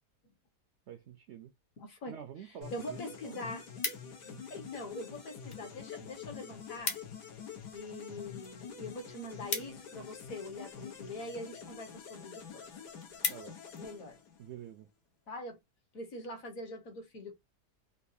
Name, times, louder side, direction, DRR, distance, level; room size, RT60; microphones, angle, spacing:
voice 1, 0.9-1.5 2.1-3.4 13.3-13.6 14.4-14.9, right 9 dB, 80° right, 0.6 m, -48 dB
voice 2, 1.8-2.2 2.7-3.7 4.2-7.0 7.7-12.7 13.8-14.2 15.3-15.6 15.9-17.3, left 1 dB, 60° left, 1.3 m, -43 dB
sound 1, 2.6-14.7, left 7 dB, 90° left, 1.7 m, -47 dB
sound 2, 3.4-4.4 5.1-5.6 5.9-6.1 6.3-6.4 6.6-7.3 7.6-10.5 11.2-11.5 12.0-12.1 12.5-12.6 12.8-13.8 14.3-14.5, left 4 dB, 45° left, 0.8 m, -39 dB
4.0 x 2.3 x 2.6 m
omnidirectional pair, 1.7 m